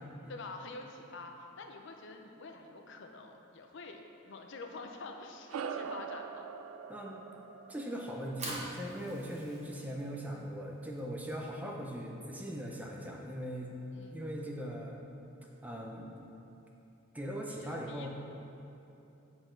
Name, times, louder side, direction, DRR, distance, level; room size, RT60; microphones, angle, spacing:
voice 1, 0.3-6.5 13.9-14.3 17.6-18.1, left 3 dB, 60° left, 4 dB, 0.5 m, -47 dB
sound 1, 5.5-10.3, right 6 dB, 85° right, 0.3 m, -44 dB
voice 2, 6.9-7.2 7.7-13.7 14.1-15.0 15.6-16.1 17.1-18.1, equal, 10° right, -1 dB, 0.5 m, -40 dB
Fire, 8.1-14.3, right 2 dB, 35° right, 1.1 m, -48 dB
7.8 x 4.4 x 4.5 m, 2.9 s
head